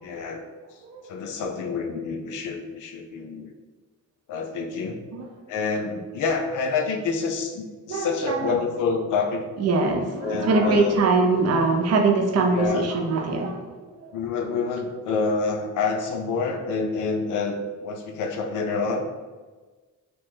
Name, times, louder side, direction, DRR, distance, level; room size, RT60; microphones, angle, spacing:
voice 1, 0.0-0.8 1.0-3.5 4.3-5.0 5.5-9.5 10.2-11.0 12.5-12.9 14.1-19.1, left 4 dB, 85° left, 4 dB, 0.5 m, -27 dB
voice 2, 7.9-8.5 9.6-14.1, right 3 dB, 55° right, 2 dB, 0.5 m, -22 dB
2.9 x 2.1 x 3.2 m, 1.3 s
cardioid pair, 110°, 30 cm